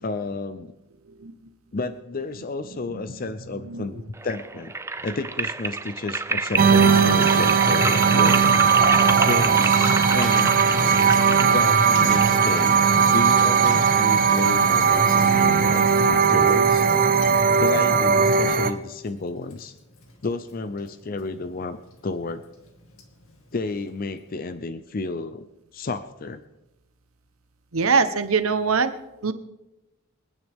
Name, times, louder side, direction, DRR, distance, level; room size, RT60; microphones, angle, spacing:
voice 1, 0.0-0.7 1.7-4.7 5.0-8.5 9.2-10.6 11.5-12.8 13.1-16.8 17.6-19.7 20.2-21.8 22.0-22.4 23.5-25.5 25.7-26.4, left 3 dB, 45° left, 11 dB, 0.6 m, -31 dB
sound 1, 4.2-13.2, right 3 dB, 15° right, 0.4 m, -29 dB
sound 2, 6.6-18.7, right 6 dB, 45° right, 0.7 m, -18 dB
Water tap faucet / Sink (filling or washing), 6.8-24.3, left 3 dB, 80° left, 2.2 m, -42 dB
voice 2, 27.7-28.9 29.2-29.3, right 5 dB, 90° right, 11 dB, 1.0 m, -22 dB
27.5 x 9.8 x 3.6 m, 0.98 s
head